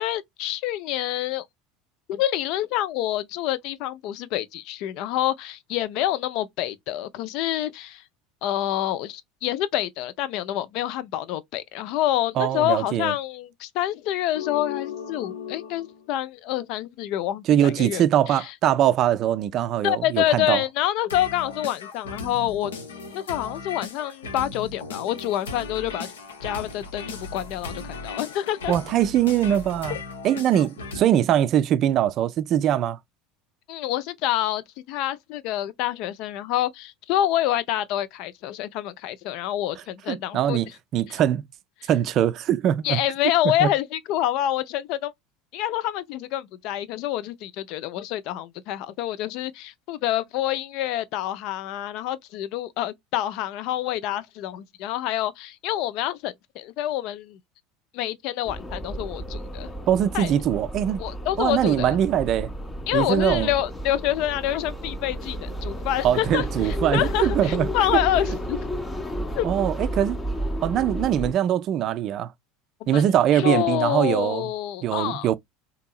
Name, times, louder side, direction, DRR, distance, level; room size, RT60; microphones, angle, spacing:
voice 1, 0.0-1.5 2.1-8.0 8.4-18.5 19.8-22.7 23.1-26.1 26.4-28.7 29.9-30.0 33.7-40.6 41.1-41.2 41.8-41.9 42.8-45.1 45.5-57.4 57.9-59.7 60.1-60.3 61.0-62.0 62.9-68.6 69.3-69.5 72.9-73.1 73.3-75.3, left 12 dB, 60° left, 0.4 m, -27 dB
voice 2, 12.4-13.1 17.5-20.6 28.7-30.0 30.2-33.0 40.1-41.4 41.9-43.0 43.6-43.7 59.9-61.0 61.4-62.5 62.9-63.5 66.0-67.7 69.4-70.2 70.6-72.3 72.9-74.5 74.8-75.4, right 10 dB, 50° right, 0.3 m, -22 dB
sound 1, 14.3-16.0 21.1-31.0, left 4 dB, 85° left, 0.7 m, -37 dB
sound 2, 58.4-71.3, equal, 15° left, 0.6 m, -32 dB
2.8 x 2.6 x 2.3 m
hypercardioid pair, 80°, 0 cm